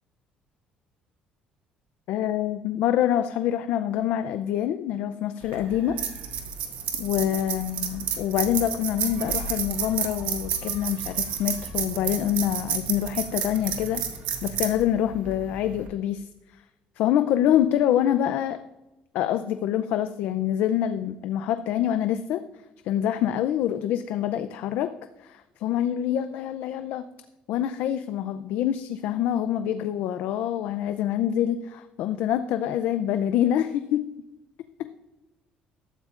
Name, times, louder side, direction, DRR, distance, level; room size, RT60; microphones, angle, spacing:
voice 1, 2.1-6.0 7.0-14.0 14.4-16.3 17.0-18.6 19.1-22.4 22.8-24.9 25.2-27.1 27.5-34.1 34.8-34.9, left 11 dB, 75° left, 10 dB, 0.5 m, -26 dB
sound 1, 5.4-15.9, right 8 dB, 80° right, 1.7 m, -31 dB
14.5 x 13.0 x 2.5 m, 1.0 s
cardioid pair, 145°, 3 cm